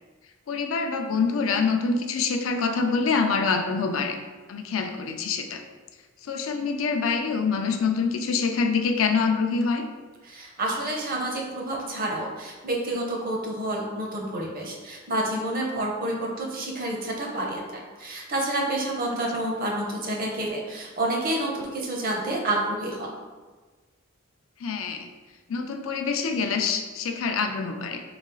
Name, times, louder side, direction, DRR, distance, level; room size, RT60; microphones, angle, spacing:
voice 1, 0.5-4.2 4.5-5.6 6.2-9.9 24.6-25.1 25.5-28.0, left 5 dB, 70° left, 5 dB, 0.4 m, -25 dB
voice 2, 10.2-23.1, right 1 dB, 45° right, -1 dB, 0.7 m, -29 dB
4.1 x 2.4 x 3.8 m, 1.3 s
head